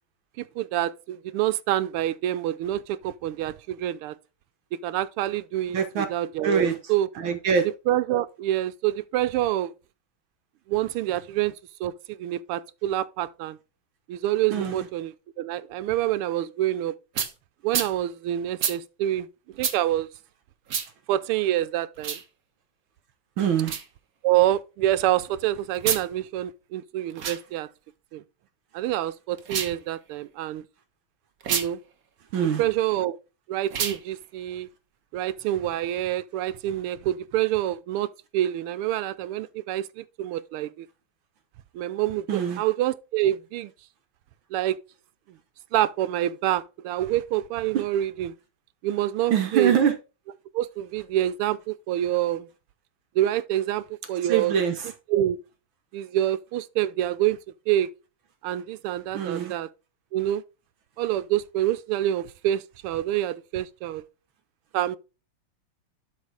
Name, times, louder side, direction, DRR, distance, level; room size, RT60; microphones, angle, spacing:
voice 1, 0.4-4.2 4.8-7.1 7.9-9.7 10.7-13.6 14.1-16.9 17.6-20.1 21.1-22.2 24.2-27.7 28.1-28.2 28.7-30.6 31.5-31.8 32.6-33.2 33.5-34.7 35.1-40.9 41.7-43.7 44.5-44.8 45.3-45.4 45.7-48.3 48.8-49.7 50.5-52.5 53.1-54.5 55.1-55.4 55.9-57.4 57.7-57.9 58.4-59.7 60.1-60.4 61.0-64.0 64.7-65.0, right 13 dB, 85° right, 1.5 m, -27 dB
voice 2, 5.7-6.1 6.4-7.7 14.5-14.9 23.4-23.8 32.3-32.6 42.3-42.6 47.7-47.8 49.3-49.9 54.2-54.9 59.1-59.6, right 7 dB, 70° right, 1.7 m, -24 dB
sound 1, 17.1-17.3 17.7-17.9 18.6-18.8 19.6-19.8 20.7-20.9 22.0-22.2 23.6-23.9 25.7-26.1 27.1-27.4 29.4-29.8 31.4-31.7 33.7-34.0, right 7 dB, 50° right, 1.3 m, -28 dB
12.0 x 4.0 x 4.7 m
omnidirectional pair, 2.4 m